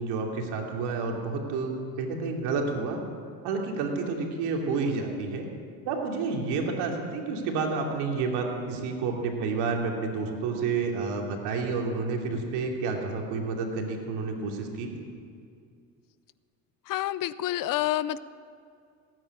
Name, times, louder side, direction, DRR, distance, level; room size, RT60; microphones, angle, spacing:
voice 1, 0.0-3.0 3.4-5.5 5.8-14.9, right 4 dB, 75° right, 1 dB, 2.9 m, -30 dB
voice 2, 16.9-18.2, left 14 dB, 55° left, 17 dB, 0.7 m, -28 dB
17.5 x 9.6 x 8.5 m, 2.3 s
supercardioid pair, 85°, 40 cm